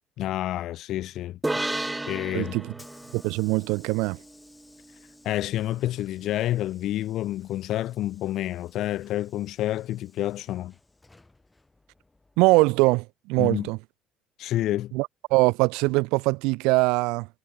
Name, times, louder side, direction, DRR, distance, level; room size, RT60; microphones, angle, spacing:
voice 1, 0.2-1.4 2.1-2.6 5.2-10.7 13.4-13.7 14.4-14.9, left 14 dB, 65° left, 0.9 m, -29 dB
sound 1, 1.4-4.9, right 2 dB, 10° right, 0.3 m, -33 dB
Hiss / Sliding door, 2.1-12.9, left 2 dB, 15° left, 7.4 m, -58 dB
voice 2, 3.1-4.2 12.4-13.8 14.9-17.3, right 25 dB, 85° right, 0.4 m, -22 dB
supercardioid pair, 85°, 0 cm